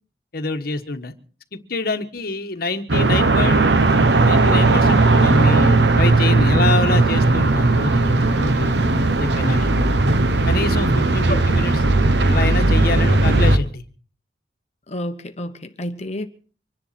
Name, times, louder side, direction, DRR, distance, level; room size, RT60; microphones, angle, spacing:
voice 1, 0.3-1.1 1.5-3.7 4.1-9.7 10.5-11.8 12.2-13.8, left 3 dB, 55° left, 1.4 m, -26 dB
sound 1, 2.9-13.6, right 2 dB, 70° right, 1.1 m, -17 dB
voice 2, 14.9-16.3, left 1 dB, 40° left, 1.0 m, -29 dB
25.5 x 10.5 x 4.3 m
head